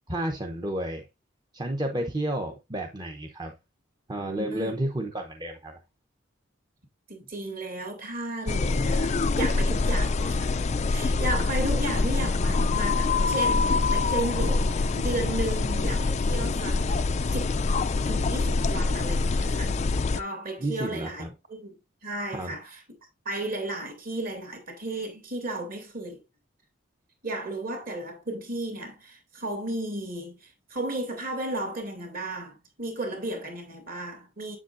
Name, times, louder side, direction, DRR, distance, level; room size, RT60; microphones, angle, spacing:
voice 1, 0.1-1.1 1.5-3.5 4.1-5.8 20.6-21.3 22.3-22.5, right 1 dB, 20° right, 0.8 m, -31 dB
voice 2, 4.2-4.7 7.1-10.6 10.9-17.5 18.0-19.8 20.1-22.8 23.2-26.2 27.2-34.6, right 1 dB, 45° right, 2.4 m, -34 dB
sound 1, 8.5-20.2, left 3 dB, 35° left, 0.4 m, -25 dB
7.7 x 7.2 x 2.5 m
head